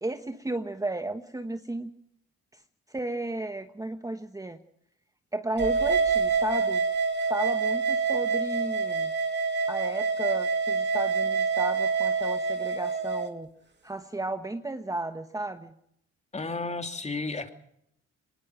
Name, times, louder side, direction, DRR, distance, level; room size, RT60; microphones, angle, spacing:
voice 1, 0.0-1.9 2.9-4.6 5.3-6.8 7.2-9.1 9.7-13.5 13.8-15.7, right 2 dB, 10° right, 7 dB, 1.2 m, -33 dB
sound 1, 5.6-13.3, right 4 dB, 35° right, 2.8 m, -26 dB
voice 2, 16.3-17.5, left 3 dB, 20° left, 6 dB, 2.8 m, -32 dB
23.0 x 20.0 x 6.2 m, 0.74 s
cardioid pair, 90°, 30 cm